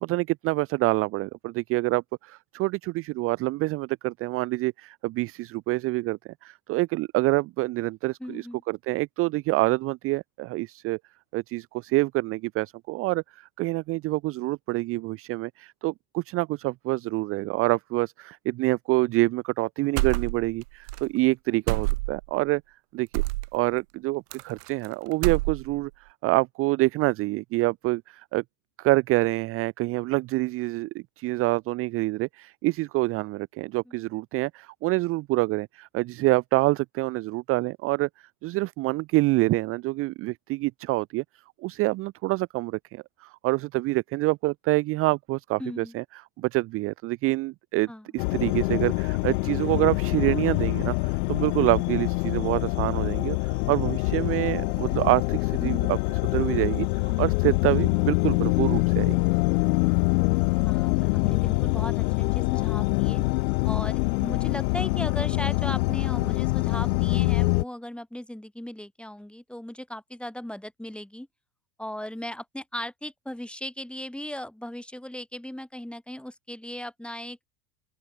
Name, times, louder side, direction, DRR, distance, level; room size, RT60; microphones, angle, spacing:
voice 1, 0.0-11.0 11.3-22.6 22.9-23.2 23.5-25.9 26.2-28.4 28.8-38.1 38.4-41.2 41.6-46.0 46.4-50.9 51.3-56.0 56.3-56.9 57.2-59.2, right 21 dB, 30° right, 0.4 m, -26 dB
voice 2, 8.2-8.6 33.9-34.0 45.6-46.0 47.9-48.1 55.6-55.9 60.6-63.2 63.6-71.3 71.8-77.4, left 1 dB, ahead, 2.2 m, -37 dB
sound 1, 20.0-20.6 20.9-21.0 21.7-22.3 23.1-23.5 24.3-24.9 25.1-25.9, right 22 dB, 70° right, 0.7 m, -27 dB
sound 2, 48.2-67.6, left 25 dB, 65° left, 0.8 m, -25 dB
open air
hypercardioid pair, 90°, 48 cm